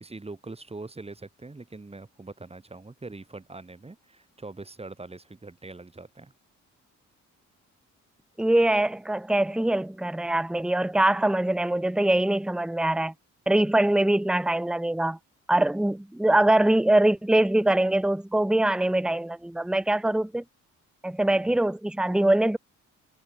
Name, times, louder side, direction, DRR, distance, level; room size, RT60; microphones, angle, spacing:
voice 1, 0.0-6.3 21.3-21.6, right 3 dB, 20° right, 6.7 m, -43 dB
voice 2, 8.4-13.1 13.5-15.2 15.5-20.4 21.0-22.6, right 1 dB, 5° right, 1.1 m, -23 dB
cardioid pair, 90°, 30 cm